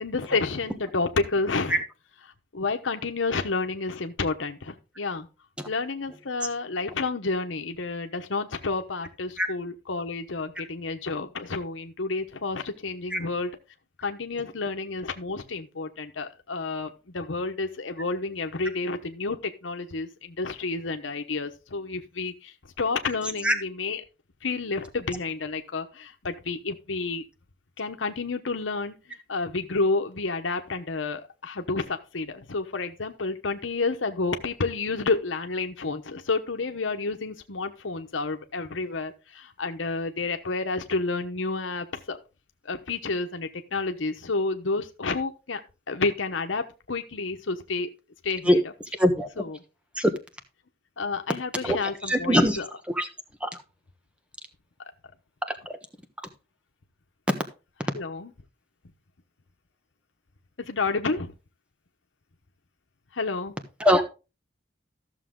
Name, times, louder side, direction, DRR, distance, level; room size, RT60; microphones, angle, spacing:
voice 1, 0.0-1.8 2.5-5.3 5.7-13.5 14.0-24.0 24.4-27.2 27.8-28.9 29.3-42.2 42.6-45.6 45.9-47.9 48.2-48.6 49.4-49.6 51.0-52.6 57.9-58.3 60.6-61.3 63.1-63.5, left 3 dB, 90° left, 6 dB, 1.0 m, -30 dB
voice 2, 49.0-49.4 49.9-50.1 51.6-52.6 52.9-53.1 53.4-53.5 55.5-55.8 63.8-64.0, equal, 5° right, 7 dB, 1.2 m, -22 dB
13.5 x 6.8 x 3.7 m, 0.30 s
head